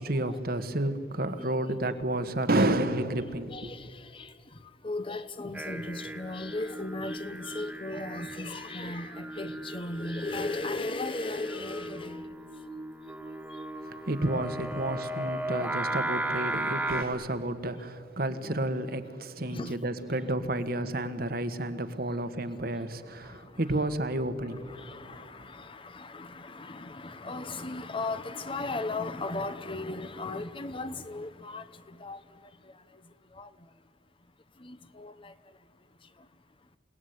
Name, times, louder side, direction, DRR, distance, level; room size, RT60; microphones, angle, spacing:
voice 1, 0.0-3.7 13.9-24.8 25.1-25.3, right 1 dB, 55° right, 1.6 m, -31 dB
voice 2, 1.4-1.8 3.5-4.3 4.8-12.2 19.5-19.7 23.3-23.9 24.6-32.2 33.4-33.5 34.6-35.3, left 2 dB, 30° left, 1.0 m, -37 dB
Singing, 5.5-17.0, right 1 dB, 10° right, 1.8 m, -36 dB
29.0 x 18.0 x 9.5 m
head